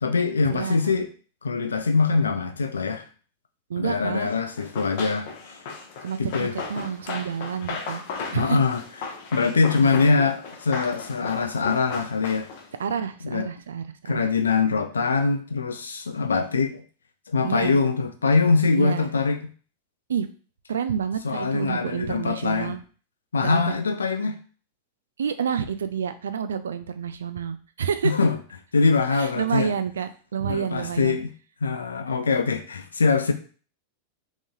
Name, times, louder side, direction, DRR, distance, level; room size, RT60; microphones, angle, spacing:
voice 1, 0.0-1.1 1.4-3.0 3.8-5.3 6.2-6.5 8.3-8.8 9.3-12.5 13.2-13.5 14.1-16.8 17.3-19.4 21.2-22.8 23.3-24.4 28.0-28.4 28.7-29.7 30.5-31.3 31.6-33.3, left 4 dB, 70° left, 8 dB, 0.4 m, -23 dB
voice 2, 3.7-4.3 6.0-8.0 8.3-8.6 9.5-10.2 12.8-14.3 17.4-17.8 18.7-19.1 20.1-20.3 20.7-22.8 23.4-23.8 25.2-28.1 29.1-31.2, right 7 dB, 65° right, 11 dB, 0.3 m, -29 dB
Run, 4.6-12.7, left 4 dB, 50° left, 0.8 m, -36 dB
3.7 x 3.0 x 2.3 m, 0.40 s
figure-of-eight pair, 90°, 0 cm